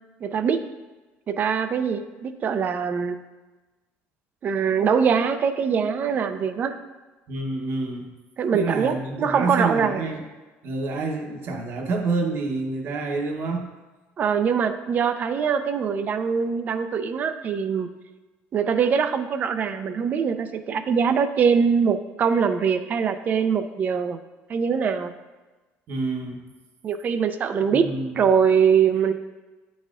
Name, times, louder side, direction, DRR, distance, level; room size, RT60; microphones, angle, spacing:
voice 1, 0.2-0.6 1.3-3.2 4.4-6.8 8.4-10.1 14.2-17.9 18.5-24.2 24.5-25.1 26.8-27.9 28.1-29.1, right 6 dB, 35° right, 10 dB, 0.4 m, -23 dB
voice 2, 7.3-8.1 8.5-10.2 10.6-13.7 25.9-26.5 27.7-28.2, right 3 dB, 50° right, 3 dB, 0.9 m, -28 dB
9.8 x 4.1 x 2.4 m, 1.2 s
cardioid pair, 130°, 5 cm